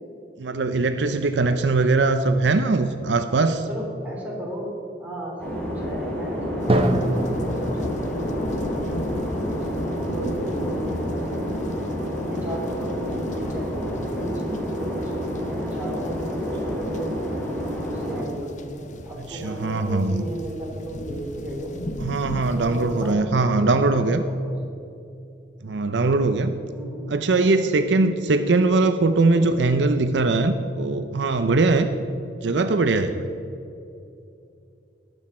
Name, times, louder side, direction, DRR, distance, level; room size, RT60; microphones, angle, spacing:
voice 1, 0.4-3.7 19.3-20.2 22.0-24.2 25.6-26.5 27.1-31.9 32.4-33.3, right 3 dB, 75° right, 8 dB, 0.6 m, -21 dB
voice 2, 3.7-4.7 5.0-9.0 9.4-11.7 12.2-17.1 17.8-21.8 22.5-24.6 26.7-27.8, right 1 dB, 10° right, -4 dB, 3.4 m, -35 dB
sound 1, 5.4-18.2, equal, 10° left, 2.7 m, -29 dB
sound 2, 6.6-23.1, left 1 dB, 45° left, 0.8 m, -36 dB
Drum, 6.7-10.4, right 1 dB, 30° right, 0.9 m, -27 dB
19.0 x 8.1 x 4.3 m, 2.7 s
head